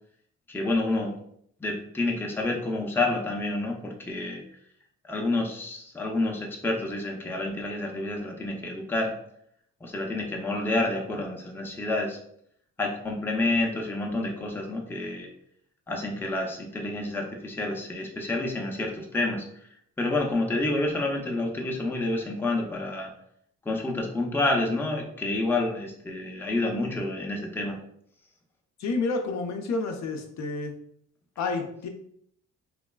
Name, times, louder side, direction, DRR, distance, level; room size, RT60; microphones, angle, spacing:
voice 1, 0.5-1.1 1.6-4.4 5.1-9.1 9.8-12.2 12.8-15.3 15.9-19.4 20.0-23.1 23.7-27.8, left 2 dB, 5° left, 0 dB, 0.5 m, -29 dB
voice 2, 28.8-30.7 31.4-31.9, left 3 dB, 65° left, 4 dB, 0.5 m, -29 dB
3.1 x 2.2 x 2.2 m, 0.68 s
cardioid pair, 90°, 30 cm